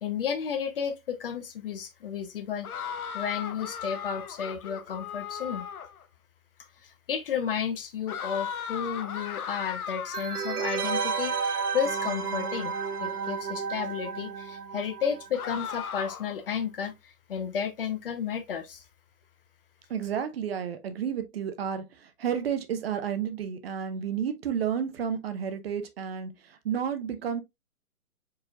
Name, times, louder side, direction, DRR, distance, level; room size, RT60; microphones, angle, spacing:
voice 1, 0.0-2.7 3.1-5.7 6.8-12.7 13.0-18.8, left 7 dB, 40° left, 0.7 m, -32 dB
sound 1, 2.6-6.0 8.1-13.3 15.3-16.4, left 8 dB, 70° left, 0.9 m, -38 dB
sound 2, 10.1-15.6 15.9-16.0, right 6 dB, 75° right, 1.0 m, -32 dB
voice 2, 19.9-27.4, right 8 dB, 40° right, 0.8 m, -31 dB
4.8 x 4.4 x 2.3 m
hypercardioid pair, 145°, 45 cm